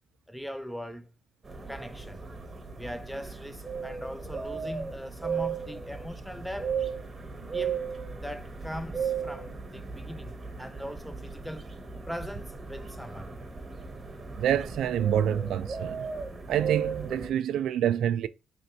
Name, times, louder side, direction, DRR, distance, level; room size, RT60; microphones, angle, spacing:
voice 1, 0.3-1.1 1.7-2.3 2.7-6.8 7.5-11.7 12.1-13.3, equal, ahead, 0.5 m, -40 dB
sound 1, 1.4-17.3, right 6 dB, 30° right, 0.9 m, -36 dB
voice 2, 14.4-16.1 16.5-18.3, right 10 dB, 80° right, 0.3 m, -27 dB
3.3 x 2.7 x 4.3 m
cardioid pair, 90°, 0 cm